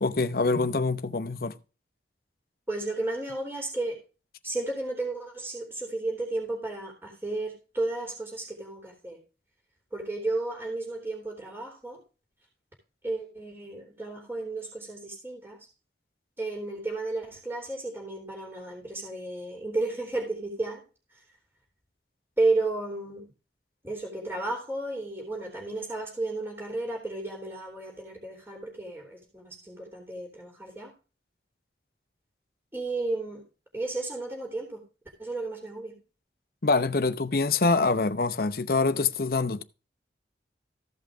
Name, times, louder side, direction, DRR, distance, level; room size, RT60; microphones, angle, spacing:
voice 1, 0.0-1.5 36.6-39.6, left 3 dB, 55° left, 0.8 m, -25 dB
voice 2, 2.7-4.0 4.4-9.2 9.9-12.0 13.0-15.7 16.4-20.8 21.1-21.2 22.4-23.3 23.8-30.9 32.7-33.4 33.7-34.8 35.2-36.0, right 2 dB, 15° right, 3.3 m, -33 dB
14.5 x 5.6 x 4.9 m
head